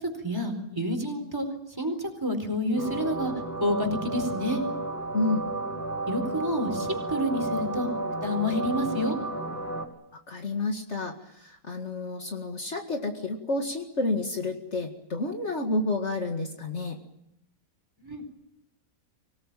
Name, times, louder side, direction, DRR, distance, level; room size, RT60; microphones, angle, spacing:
voice 1, 0.0-1.5 1.8-3.3 3.6-4.6 6.1-7.9 8.2-9.2 18.0-18.2, equal, 15° right, 4 dB, 4.4 m, -29 dB
sound 1, 2.8-9.9, right 2 dB, 10° left, 3.0 m, -32 dB
voice 2, 5.1-5.5 10.1-17.0, left 2 dB, 50° left, 3 dB, 2.3 m, -30 dB
25.0 x 18.5 x 9.1 m, 0.80 s
omnidirectional pair, 1.5 m